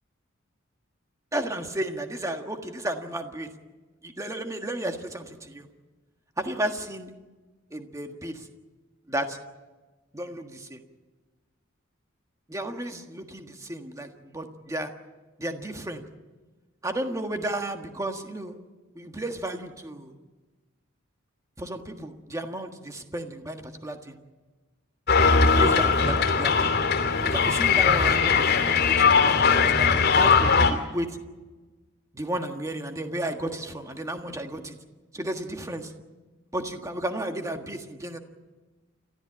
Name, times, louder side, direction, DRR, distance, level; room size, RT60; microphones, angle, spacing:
voice 1, 1.3-3.5 4.0-5.7 6.4-7.1 7.7-8.4 9.1-9.4 10.1-10.8 12.5-14.9 15.4-16.0 16.8-18.6 18.9-20.1 21.6-24.2 25.4-26.7 27.2-31.2 32.1-34.8 35.1-35.9 36.5-38.2, right 1 dB, 15° right, 5 dB, 1.6 m, -33 dB
sound 1, 25.1-30.7, left 5 dB, 55° left, 2.8 m, -20 dB
29.5 x 13.5 x 8.7 m, 1.3 s
head